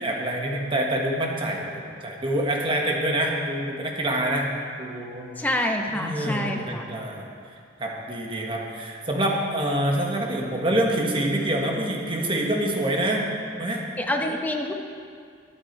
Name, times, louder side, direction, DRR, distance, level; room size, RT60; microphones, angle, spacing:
voice 1, 0.0-4.5 4.8-5.3 5.9-7.3 7.8-13.2 13.5-13.8, right 1 dB, 30° right, -1 dB, 1.6 m, -26 dB
voice 2, 5.4-6.8 14.0-14.7, left 1 dB, 10° left, 2 dB, 1.1 m, -27 dB
22.0 x 8.2 x 4.7 m, 2.2 s
head